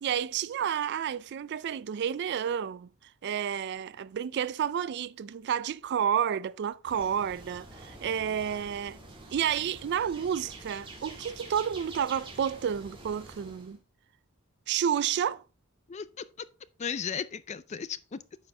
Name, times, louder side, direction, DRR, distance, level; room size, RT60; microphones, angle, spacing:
voice 1, 0.0-2.9 3.2-9.0 9.3-13.8 14.7-15.4, right 8 dB, 50° right, 0.3 m, -30 dB
sound 1, 6.8-13.8, right 2 dB, 25° right, 1.8 m, -47 dB
voice 2, 15.9-16.5 16.8-18.2, left 6 dB, 30° left, 0.4 m, -36 dB
8.9 x 5.3 x 3.3 m
head